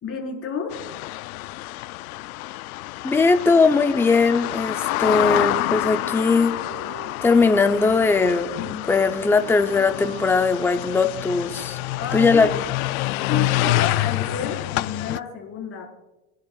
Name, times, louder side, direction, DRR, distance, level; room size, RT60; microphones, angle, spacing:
voice 1, 0.0-0.7 12.0-12.5 13.3-15.9, left 5 dB, 35° left, -1 dB, 4.6 m, -30 dB
sound 1, 0.7-15.2, left 18 dB, 90° left, 0.5 m, -27 dB
voice 2, 3.0-6.6 7.2-11.8 12.1-12.5, left 4 dB, 5° left, 8 dB, 0.6 m, -19 dB
Wind instrument woodwind instrument, 5.0-7.2 7.5-10.6, right 6 dB, 60° right, 2.0 m, -43 dB
26.0 x 10.5 x 2.4 m, 1.0 s
supercardioid pair, 130°, 41 cm